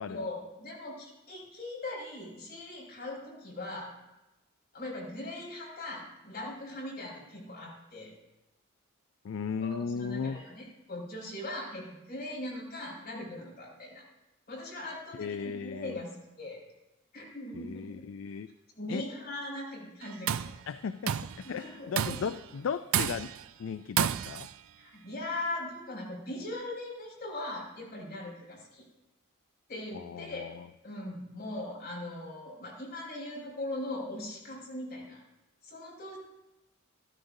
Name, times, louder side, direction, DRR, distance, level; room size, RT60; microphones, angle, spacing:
voice 1, 0.1-3.9 4.7-8.1 9.6-14.0 14.5-16.6 17.1-18.1 18.7-20.5 21.4-22.2 24.8-28.8 29.7-30.4 30.8-35.2 35.6-36.2, left 1 dB, 45° left, -5 dB, 4.9 m, -40 dB
voice 2, 9.2-10.4 15.1-16.0 17.5-18.5 18.9-19.0 20.7-23.3 23.6-24.5 29.9-30.7, left 6 dB, 65° left, 11 dB, 0.3 m, -36 dB
Tools, 20.0-20.6 21.1-21.4 22.0-22.4 22.9-23.4 24.0-24.5, right 9 dB, 70° right, 0.4 m, -30 dB
14.5 x 13.0 x 2.7 m, 0.99 s
head